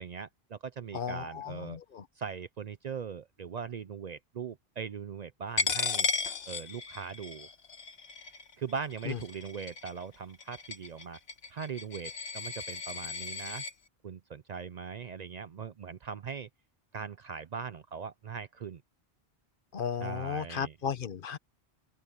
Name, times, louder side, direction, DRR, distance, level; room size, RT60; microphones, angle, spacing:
voice 1, 0.0-1.8 2.2-6.1 6.5-7.5 8.6-11.2 11.5-13.6 14.0-16.5 16.9-18.8 20.0-20.7, right 6 dB, 50° right, 0.5 m, -40 dB
voice 2, 0.9-2.1 9.0-9.2 19.7-21.4, left 7 dB, 60° left, 1.0 m, -35 dB
Coin (dropping), 5.6-13.7, left 5 dB, 85° left, 1.5 m, -35 dB
open air
omnidirectional pair, 1.0 m